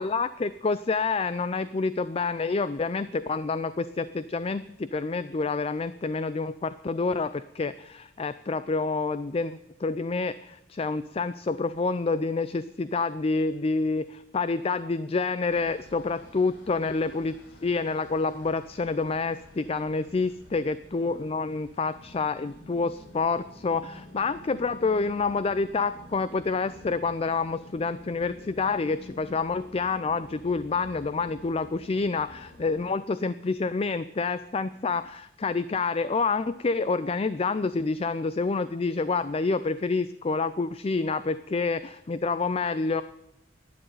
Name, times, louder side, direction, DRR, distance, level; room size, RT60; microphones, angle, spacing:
voice 1, 0.0-17.3 17.6-43.0, left 4 dB, 30° left, 14 dB, 0.4 m, -28 dB
sound 1, 15.5-32.9, left 1 dB, 80° left, 3.6 m, -50 dB
12.0 x 10.5 x 9.2 m, 0.87 s
head